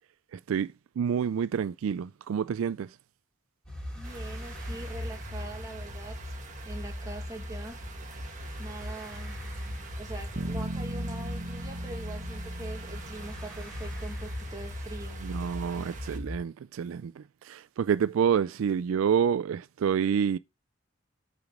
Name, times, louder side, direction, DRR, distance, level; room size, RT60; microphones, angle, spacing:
voice 1, 1.0-2.9 15.2-20.4, right 7 dB, 85° right, 0.3 m, -28 dB
sound 1, 3.6-16.4, left 1 dB, 5° left, 3.0 m, -39 dB
voice 2, 3.9-6.3 6.6-7.8 8.6-9.4 10.0-15.2, right 2 dB, 15° right, 1.8 m, -43 dB
sound 2, 4.0-16.2, right 5 dB, 40° right, 1.6 m, -48 dB
sound 3, 10.4-14.5, right 1 dB, 55° right, 1.1 m, -39 dB
8.3 x 5.0 x 3.7 m
head